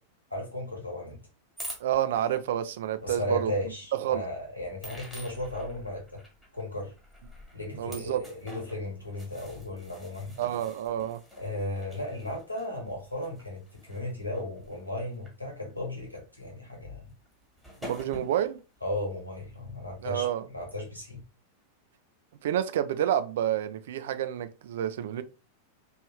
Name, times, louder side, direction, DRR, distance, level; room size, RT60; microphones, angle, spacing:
voice 1, 0.3-1.2 3.0-6.2 6.5-6.9 7.5-10.3 11.4-13.6 13.9-17.1 18.8-21.2, left 1 dB, 85° left, 1.3 m, -35 dB
sound 1, 1.6-2.4 3.3-3.4 4.8-15.3 15.8-16.0 17.3-17.4 17.6-18.6, equal, 5° left, 1.4 m, -46 dB
voice 2, 1.8-3.5 4.0-4.2 7.7-8.3 10.4-11.2 17.8-18.6 20.0-20.5 22.4-25.2, right 11 dB, 55° right, 0.3 m, -29 dB
3.1 x 2.6 x 3.1 m
figure-of-eight pair, 90°, 0 cm